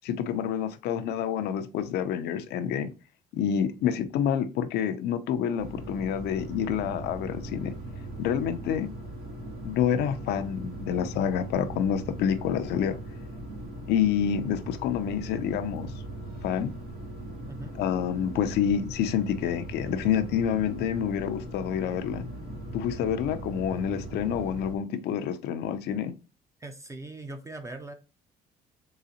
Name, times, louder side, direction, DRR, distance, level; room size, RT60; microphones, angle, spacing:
voice 1, 0.0-2.9 3.3-7.7 8.2-8.9 9.6-13.0 13.9-15.9 16.4-16.7 17.8-22.2 22.7-26.1, left 9 dB, 75° left, 0.5 m, -28 dB
sound 1, 5.6-24.7, right 1 dB, 65° right, 1.1 m, -39 dB
voice 2, 26.6-27.9, right 2 dB, 15° right, 0.5 m, -40 dB
3.9 x 3.1 x 2.8 m
cardioid pair, 110°, 17 cm